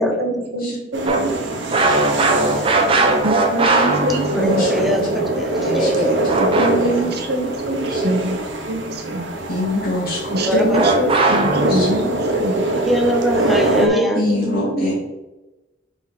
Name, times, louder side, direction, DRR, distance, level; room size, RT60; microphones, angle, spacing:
voice 1, 0.0-1.3 1.8-1.9 3.2-5.1 6.4-8.4 8.7-9.2 10.3-12.7 13.8-14.9, equal, 60° right, 2 dB, 1.1 m, -24 dB
sound 1, 0.9-13.9, right 2 dB, 85° right, 1.0 m, -23 dB
sound 2, 1.1-4.7 6.3-7.0 10.7-11.9, right 3 dB, 30° right, 0.9 m, -18 dB
voice 2, 1.8-3.2 4.3-6.4 10.5-10.9 12.9-14.2, equal, ahead, 2 dB, 0.8 m, -23 dB
voice 3, 4.3-5.3 5.6-6.4 6.8-7.2 7.9-8.0 9.1-10.4 11.7-11.9 14.1-14.9, left 1 dB, 55° left, -10 dB, 2.1 m, -26 dB
5.8 x 4.4 x 4.2 m, 1.1 s
head